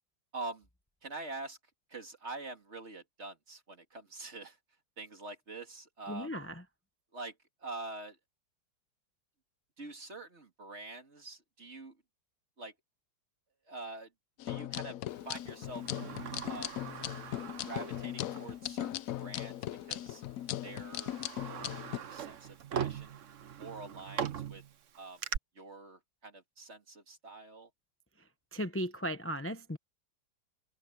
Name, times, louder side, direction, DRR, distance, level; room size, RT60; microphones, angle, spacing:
voice 1, 0.3-0.7 1.0-1.6 1.9-4.6 5.0-6.3 7.1-7.4 7.6-8.2 9.8-12.0 12.6-12.7 13.7-14.1 14.4-15.0 15.2-15.8 16.4-16.7 17.6-20.2 20.6-23.2 23.6-24.6 25.0-25.2 25.5-27.7, right 3 dB, 35° right, 2.7 m, -45 dB
voice 2, 6.1-6.6 28.5-29.8, equal, 15° left, 0.4 m, -36 dB
sound 1, 14.4-22.0, left 13 dB, 75° left, 0.8 m, -39 dB
Sliding door, 15.4-18.6 18.9-19.0 20.0-20.2 20.6-25.4, right 8 dB, 50° right, 1.0 m, -41 dB
omnidirectional pair, 2.0 m